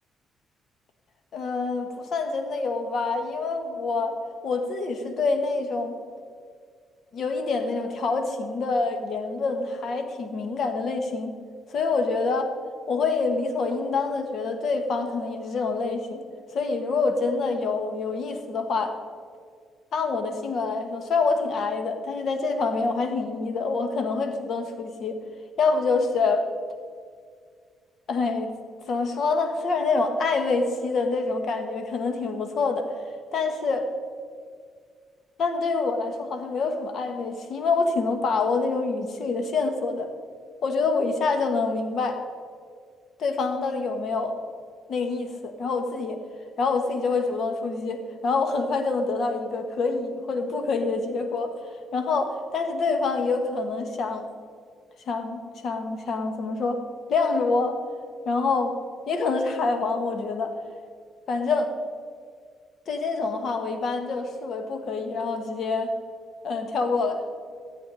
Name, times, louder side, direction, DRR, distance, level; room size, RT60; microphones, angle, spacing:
voice 1, 1.3-4.1 4.4-5.9 7.1-11.3 11.7-12.5 12.9-16.2 16.5-19.0 19.9-25.2 25.6-26.4 28.1-28.5 28.9-32.9 33.3-33.9 35.4-40.1 40.6-42.2 43.2-44.3 44.9-46.2 46.6-51.5 51.9-54.3 55.1-56.8 57.1-57.8 58.2-58.7 59.1-60.5 61.3-61.7 62.9-65.9 66.4-67.2, left 4 dB, 60° left, 6 dB, 1.5 m, -26 dB
14.0 x 8.3 x 4.1 m, 2.1 s
cardioid pair, 90°, 0 cm